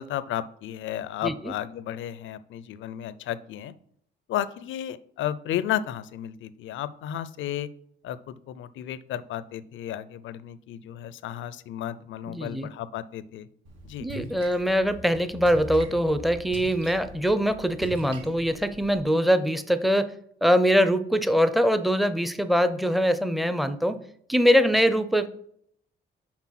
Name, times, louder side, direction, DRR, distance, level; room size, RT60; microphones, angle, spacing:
voice 1, 0.0-3.7 4.3-7.7 8.0-13.5 13.8-14.1, left 11 dB, 75° left, 15 dB, 0.5 m, -33 dB
voice 2, 1.2-1.5 12.3-12.7 14.0-20.1 20.4-24.0 24.3-25.3, equal, ahead, 11 dB, 0.6 m, -23 dB
Splash splatter, 13.7-19.0, right 2 dB, 75° right, 1.6 m, -42 dB
6.1 x 4.3 x 5.8 m, 0.68 s
cardioid pair, 90°, 20 cm